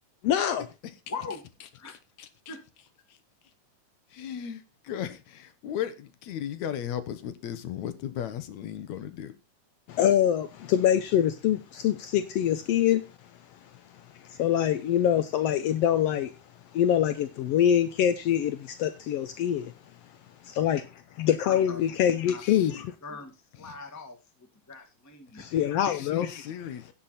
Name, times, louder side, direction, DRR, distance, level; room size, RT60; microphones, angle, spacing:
voice 1, 0.2-0.7 9.9-13.0 13.5-16.4 16.7-19.7 20.4-22.9 25.4-26.5, left 10 dB, 85° left, 1.4 m, -25 dB
voice 2, 1.1-1.4 1.7-1.9 2.5-2.6 21.4-21.8 22.3-22.4 23.0-25.7, left 4 dB, 10° left, 0.7 m, -41 dB
voice 3, 1.9-2.5 4.1-9.3 22.4-22.8 23.6-23.8 25.9-26.9, left 10 dB, 70° left, 2.1 m, -36 dB
17.0 x 5.8 x 4.1 m
omnidirectional pair, 3.6 m